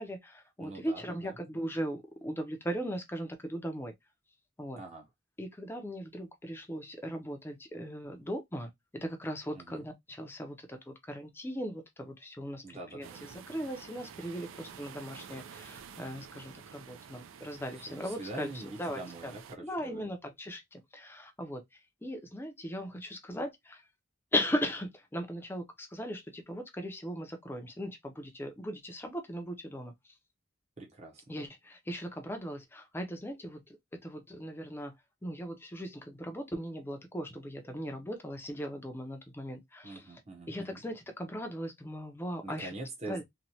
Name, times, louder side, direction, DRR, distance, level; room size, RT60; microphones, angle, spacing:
voice 1, 0.0-3.9 4.6-4.8 5.4-18.5 18.8-19.3 19.6-23.8 24.3-29.9 31.3-34.9 35.2-40.1 40.5-42.7 43.1-43.2, equal, 10° left, 0.4 m, -38 dB
voice 2, 0.6-1.3 4.7-5.0 9.5-9.9 12.6-13.1 17.9-20.0 30.8-31.2 39.8-40.8 42.4-43.2, right 2 dB, 30° right, 0.7 m, -44 dB
sound 1, 13.0-19.6, right 7 dB, 75° right, 0.4 m, -50 dB
3.0 x 2.2 x 2.6 m
head